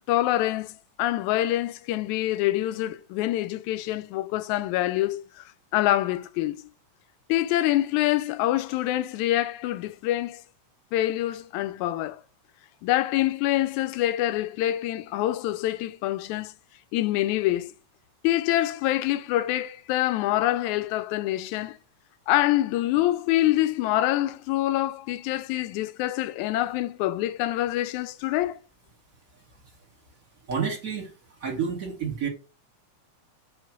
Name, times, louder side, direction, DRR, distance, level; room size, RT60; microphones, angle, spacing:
voice 1, 0.1-5.4 5.7-6.6 7.3-10.4 10.9-12.2 12.8-16.5 16.9-17.7 18.2-21.8 22.3-28.6, left 14 dB, 80° left, 1.8 m, -25 dB
voice 2, 30.5-31.1 31.4-32.3, right 6 dB, 45° right, 1.1 m, -29 dB
7.5 x 2.9 x 5.9 m
omnidirectional pair, 3.5 m